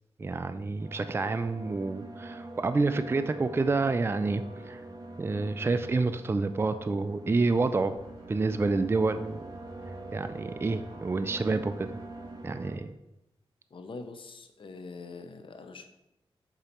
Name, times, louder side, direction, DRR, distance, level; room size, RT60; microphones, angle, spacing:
voice 1, 0.2-4.8 5.2-8.0 8.3-9.5 10.1-11.9 12.4-12.9, right 3 dB, 25° right, 10 dB, 0.3 m, -28 dB
sound 1, 0.8-12.8, right 2 dB, 40° right, 1.0 m, -44 dB
sound 2, 7.9-12.3, right 4 dB, 60° right, 1.7 m, -56 dB
voice 2, 13.7-15.9, left 3 dB, 55° left, 7 dB, 0.8 m, -43 dB
6.9 x 3.9 x 4.3 m, 0.90 s
wide cardioid pair, 80°, 10 cm